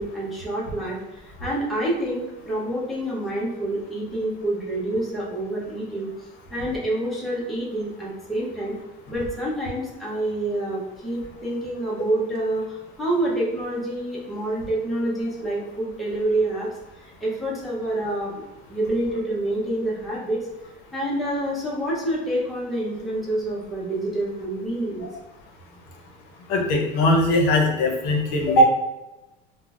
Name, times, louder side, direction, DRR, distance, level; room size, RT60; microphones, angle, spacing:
voice 1, 0.0-6.1 6.5-8.7 9.1-16.7 17.2-18.4 18.7-20.4 20.9-25.0, right 1 dB, ahead, -7 dB, 0.6 m, -27 dB
voice 2, 26.5-28.6, left 1 dB, 65° left, 1 dB, 0.7 m, -20 dB
3.7 x 2.0 x 2.3 m, 1.0 s
cardioid pair, 160°, 19 cm